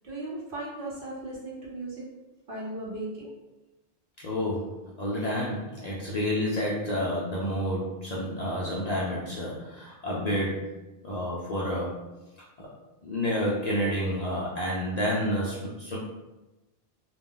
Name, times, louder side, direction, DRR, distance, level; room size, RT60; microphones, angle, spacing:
voice 1, 0.0-2.1 2.5-3.3, right 2 dB, 60° right, -4 dB, 0.9 m, -37 dB
voice 2, 4.2-10.6 11.0-12.0 12.6-12.7 13.0-16.0, equal, 55° left, -5 dB, 0.5 m, -29 dB
2.2 x 2.0 x 3.6 m, 1.1 s
omnidirectional pair, 1.1 m